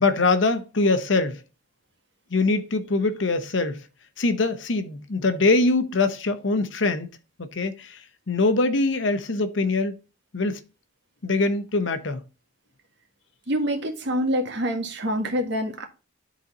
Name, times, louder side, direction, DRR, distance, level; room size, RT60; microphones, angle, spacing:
voice 1, 0.0-1.4 2.3-3.8 4.2-7.1 7.4-8.0 8.3-9.9 10.3-10.6 11.2-12.2, left 3 dB, 70° left, 0.9 m, -23 dB
voice 2, 13.5-15.8, equal, 65° right, 1.7 m, -26 dB
10.5 x 4.1 x 4.1 m
head